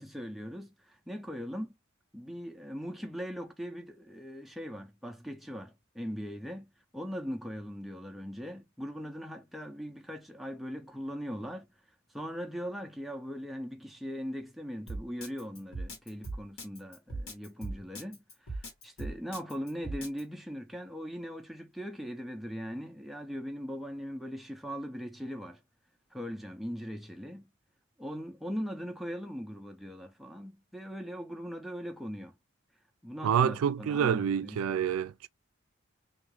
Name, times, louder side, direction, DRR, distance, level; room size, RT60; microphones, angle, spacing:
voice 1, 0.0-1.7 2.1-11.7 12.1-25.6 26.1-27.5 28.0-32.3 33.0-34.9, equal, ahead, 0.3 m, -40 dB
Drum kit, 14.9-20.2, right 2 dB, 80° left, 1.4 m, -39 dB
voice 2, 33.2-35.3, right 8 dB, 85° right, 0.3 m, -27 dB
2.6 x 2.4 x 3.0 m
head